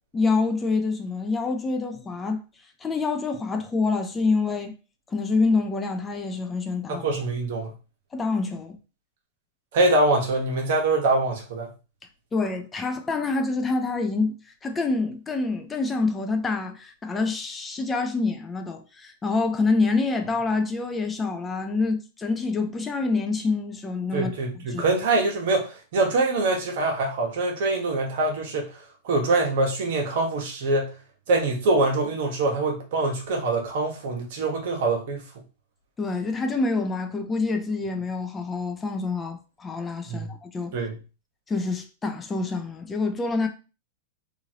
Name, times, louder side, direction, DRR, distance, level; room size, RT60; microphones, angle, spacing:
voice 1, 0.1-2.4 2.8-4.8 5.1-7.1 8.1-8.8 12.3-14.3 14.6-24.3 24.7-24.8 36.0-40.7 41.5-43.5, left 3 dB, 15° left, 0.4 m, -26 dB
voice 2, 6.9-7.7 9.7-11.7 24.1-28.7 29.0-30.9 31.3-35.2 40.1-40.3 40.7-41.0, right 2 dB, 60° right, 1.1 m, -24 dB
2.9 x 2.5 x 2.8 m
supercardioid pair, 145°, 0 cm